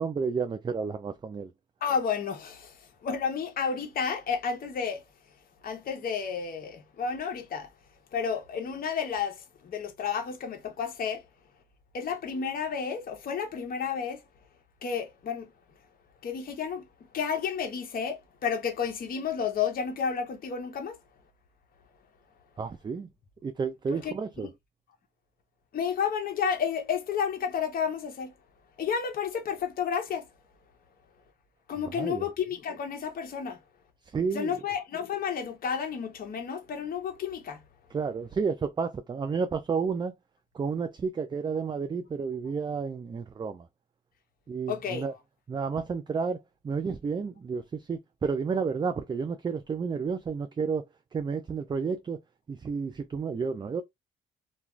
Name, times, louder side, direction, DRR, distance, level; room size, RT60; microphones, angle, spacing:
voice 1, 0.0-1.5 22.6-23.1 23.4-24.5 31.9-32.2 34.1-34.5 37.9-40.1 40.5-43.7 44.5-45.1 45.5-46.4 46.6-50.8 51.1-52.2 52.5-53.8, right 5 dB, 25° right, 0.3 m, -31 dB
voice 2, 1.8-5.0 5.6-7.7 8.1-11.2 11.9-14.2 14.8-15.5 16.2-16.9 17.1-21.0 24.0-24.5 25.7-28.3 28.8-30.3 31.7-33.6 34.3-37.6 44.7-45.0, left 6 dB, 45° left, 0.7 m, -31 dB
2.4 x 2.2 x 3.0 m
cardioid pair, 90°, 20 cm